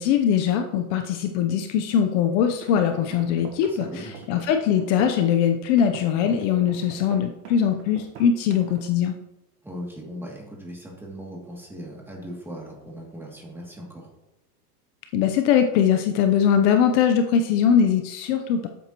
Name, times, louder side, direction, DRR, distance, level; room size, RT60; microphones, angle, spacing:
voice 1, 0.0-3.9 4.3-9.2 15.1-18.7, left 8 dB, 50° left, 6 dB, 0.8 m, -21 dB
sound 1, 2.5-5.3 5.8-8.9, right 8 dB, 80° right, 1.5 m, -42 dB
voice 2, 3.6-4.3 9.6-14.1, equal, 5° right, -3 dB, 2.5 m, -39 dB
12.0 x 8.5 x 3.0 m, 0.95 s
supercardioid pair, 145°, 46 cm